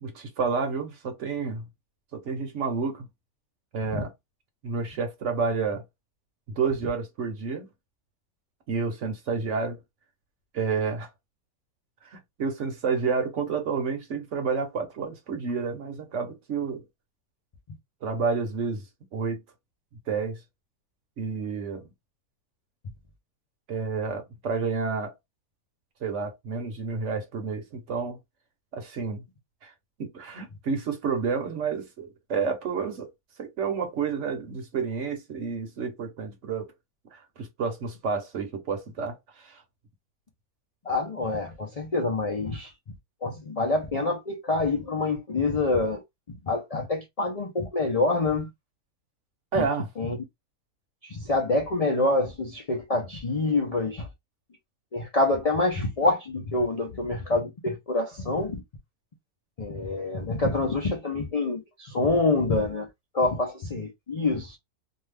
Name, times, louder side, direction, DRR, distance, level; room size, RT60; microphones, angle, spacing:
voice 1, 0.0-1.6 2.1-3.1 3.7-4.1 4.6-5.8 6.6-7.7 8.7-9.8 10.5-11.1 12.0-16.8 18.0-18.8 19.1-19.4 20.1-20.4 21.2-21.9 23.7-25.1 26.0-28.2 28.7-29.2 29.6-29.7 30.0-33.1 33.4-36.7 37.1-39.6 49.5-49.9, right 5 dB, 60° right, 1.0 m, -30 dB
voice 2, 40.8-42.7 43.2-46.0 46.3-48.5 49.5-49.7 50.0-50.2 51.0-54.1 54.9-58.6 59.6-62.9 63.1-64.6, left 2 dB, 60° left, 0.4 m, -26 dB
2.7 x 2.3 x 3.2 m
omnidirectional pair, 1.6 m